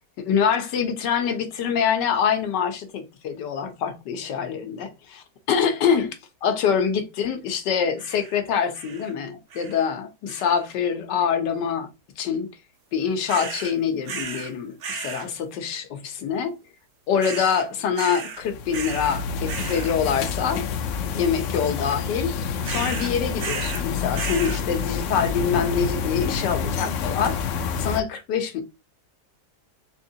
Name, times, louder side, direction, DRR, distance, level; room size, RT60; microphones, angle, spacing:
voice 1, 0.2-11.9 12.2-12.5 12.9-16.6 17.1-20.6 21.1-22.3 22.7-27.4 27.8-28.6, left 7 dB, 85° left, 1.5 m, -25 dB
sound 1, 8.0-8.4 8.7-9.1 9.5-9.9 10.3-10.7 13.3-13.7 14.1-14.5 14.8-15.3 17.2-17.7 18.0-18.4 18.7-19.2 19.5-19.9 22.6-23.9 24.1-24.6, right 5 dB, 75° right, 1.5 m, -34 dB
sound 2, 18.4-28.0, left 6 dB, 70° left, 0.7 m, -28 dB
3.9 x 3.6 x 2.7 m
omnidirectional pair, 1.8 m